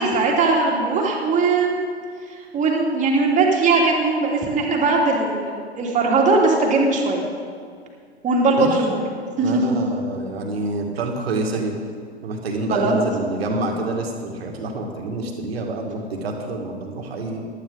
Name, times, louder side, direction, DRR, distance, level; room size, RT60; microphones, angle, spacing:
voice 1, 0.0-1.9 2.5-7.2 8.2-9.0 9.4-9.8 12.7-13.0, right 3 dB, 20° right, -1 dB, 2.5 m, -19 dB
voice 2, 9.4-11.8 12.2-17.5, right 2 dB, 65° right, 2 dB, 2.2 m, -27 dB
15.5 x 12.0 x 4.0 m, 2.1 s
figure-of-eight pair, 105°, 33 cm